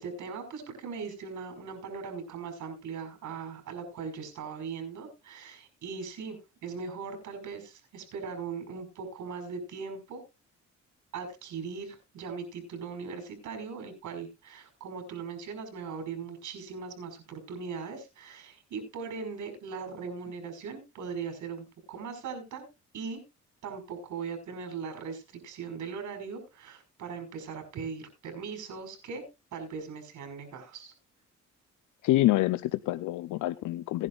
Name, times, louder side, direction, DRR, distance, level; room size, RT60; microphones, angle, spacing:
voice 1, 0.0-10.2 11.1-22.7 22.9-23.2 23.6-29.2 29.5-30.9, right 5 dB, 70° right, 6 dB, 5.4 m, -39 dB
voice 2, 32.0-34.1, left 16 dB, 80° left, 15 dB, 0.6 m, -26 dB
18.0 x 10.5 x 2.4 m, 0.26 s
cardioid pair, 90°, 30 cm